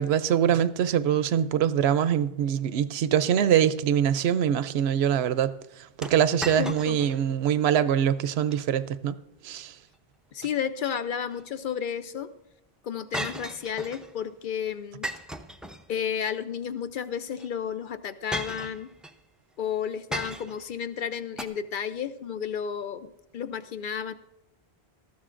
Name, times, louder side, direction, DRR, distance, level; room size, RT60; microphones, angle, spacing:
voice 1, 0.0-5.5 6.0-9.1 9.4-9.7, right 9 dB, 85° right, 0.8 m, -23 dB
sound 1, 6.0-7.2 7.6-7.7 8.3-8.6 10.5-11.4 13.1-14.1 15.0-16.2 17.3-17.5 18.3-19.2 20.1-20.7 21.4-21.5, right 1 dB, ahead, 0.3 m, -36 dB
voice 2, 6.6-7.0 10.3-12.3 12.8-15.1 15.9-18.9 19.6-24.1, left 8 dB, 60° left, 0.6 m, -32 dB
19.0 x 13.5 x 2.5 m
omnidirectional pair, 1.0 m